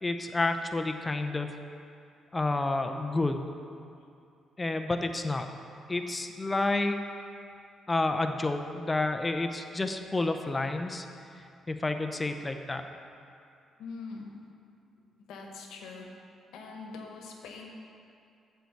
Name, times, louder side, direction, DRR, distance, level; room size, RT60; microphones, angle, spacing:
voice 1, 0.0-1.5 2.3-3.4 4.6-5.5 5.9-7.0 7.9-11.1 11.7-12.8, left 2 dB, 20° left, 6 dB, 0.6 m, -29 dB
voice 2, 13.8-14.4 15.0-16.1 16.5-17.7, left 4 dB, 85° left, 1 dB, 1.1 m, -43 dB
7.9 x 4.5 x 6.7 m, 2.5 s
cardioid pair, 90°, 0 cm